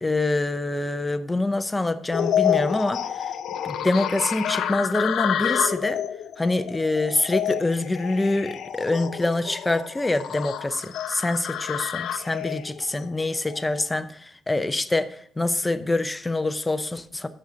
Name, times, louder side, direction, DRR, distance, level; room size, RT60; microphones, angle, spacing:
voice 1, 0.0-3.4 3.6-6.0 6.4-17.3, left 2 dB, 10° left, 11 dB, 0.5 m, -25 dB
sound 1, 2.1-13.9, left 10 dB, 70° left, 0.5 m, -29 dB
15.0 x 6.3 x 2.7 m, 0.65 s
cardioid pair, 155°, 0 cm